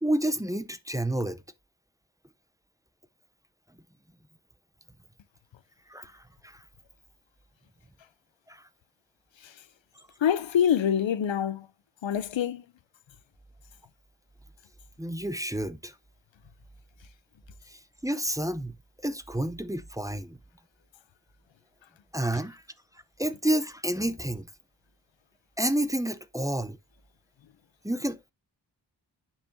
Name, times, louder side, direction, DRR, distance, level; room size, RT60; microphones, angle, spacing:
voice 1, 0.0-1.4 5.9-6.6 8.5-8.6 15.0-15.9 18.0-18.7 19.0-20.4 22.1-22.6 23.2-24.5 25.6-26.8 27.8-28.3, right 1 dB, 10° right, 0.6 m, -29 dB
voice 2, 10.2-11.7 12.0-12.6, left 9 dB, 90° left, 0.6 m, -25 dB
9.6 x 5.8 x 2.6 m
wide cardioid pair, 65°, 44 cm